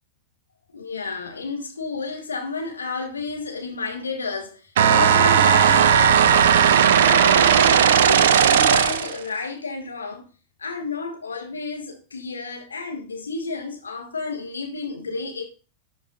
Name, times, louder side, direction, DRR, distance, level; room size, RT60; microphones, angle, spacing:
voice 1, 0.7-6.7 7.0-10.3 10.6-15.4, left 4 dB, 75° left, 1.4 m, -31 dB
sound 1, 4.8-9.2, right 8 dB, 60° right, 0.5 m, -16 dB
11.0 x 3.9 x 2.5 m
figure-of-eight pair, 90°, 0 cm